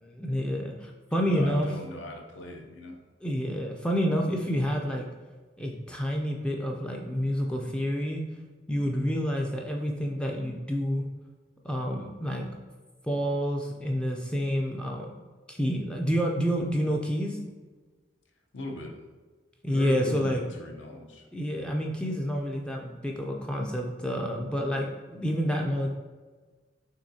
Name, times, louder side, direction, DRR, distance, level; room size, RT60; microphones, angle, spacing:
voice 1, 0.0-1.7 3.2-5.0 5.6-8.2 8.7-11.1 11.6-12.5 13.0-15.1 15.5-17.4 19.6-20.4 21.3-24.9 25.1-25.9, equal, 5° left, 0 dB, 0.3 m, -28 dB
voice 2, 1.1-3.0 18.5-19.1 19.7-21.3, left 1 dB, 70° left, 3 dB, 0.7 m, -40 dB
6.3 x 3.1 x 2.7 m, 1.4 s
head